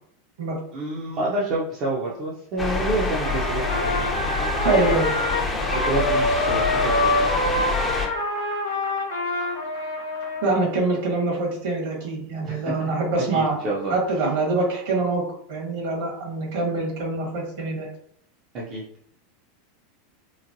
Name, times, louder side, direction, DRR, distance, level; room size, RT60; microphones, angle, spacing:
voice 1, 0.7-4.1 4.4-5.0 5.7-7.3 12.4-12.8 13.3-13.9 18.5-18.8, right 2 dB, 45° right, -6 dB, 0.7 m, -29 dB
sound 1, 2.6-8.1, left 3 dB, 15° left, 0.7 m, -26 dB
Trumpet, 3.2-10.5, left 2 dB, 85° left, 0.9 m, -25 dB
voice 2, 4.6-5.1 10.4-13.6 13.9-15.2 15.5-17.9, right 3 dB, 65° right, -2 dB, 1.4 m, -24 dB
3.1 x 2.1 x 2.6 m, 0.66 s
hypercardioid pair, 95°, 0 cm